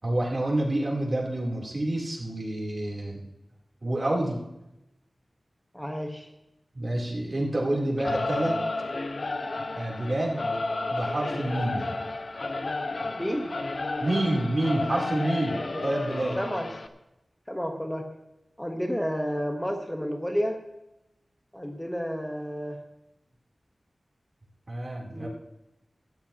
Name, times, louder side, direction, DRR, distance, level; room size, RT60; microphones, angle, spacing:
voice 1, 0.0-3.2 3.8-4.5 6.7-8.6 9.8-10.4 10.9-11.9 14.0-16.4 24.7-25.3, right 1 dB, 45° right, -2 dB, 3.5 m, -28 dB
voice 2, 5.7-6.3 13.1-13.6 15.7-15.8 16.4-16.7 17.5-18.1 18.6-20.6 21.5-22.8 25.1-25.3, equal, 5° left, 3 dB, 1.3 m, -31 dB
Singing / Musical instrument, 8.0-16.9, left 2 dB, 60° left, 0.9 m, -32 dB
17.0 x 13.5 x 3.0 m, 0.92 s
wide cardioid pair, 75°, 0 cm